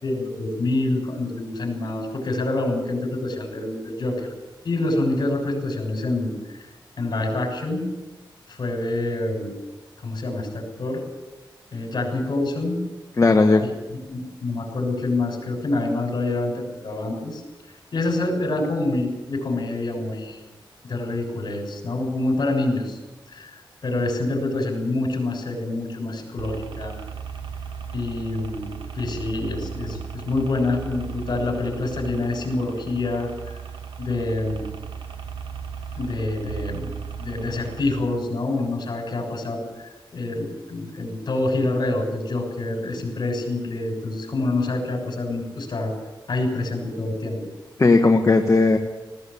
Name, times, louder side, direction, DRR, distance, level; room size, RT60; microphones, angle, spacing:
voice 1, 0.0-4.3 4.6-6.7 7.0-7.8 8.5-9.5 10.0-11.0 11.7-12.8 13.6-13.7 14.1-17.4 17.9-20.4 20.9-23.0 23.3-27.0 27.9-28.7 28.9-33.3 34.0-34.7 35.9-36.9 37.2-39.6 40.1-46.0 46.3-47.4, left 2 dB, 55° left, 2 dB, 6.6 m, -26 dB
voice 2, 13.2-13.6 47.8-48.8, left 3 dB, 35° left, 4 dB, 1.3 m, -16 dB
sound 1, 26.4-37.9, right 6 dB, 85° right, 1.8 m, -36 dB
19.0 x 17.0 x 8.5 m, 1.1 s
wide cardioid pair, 125°, 8 cm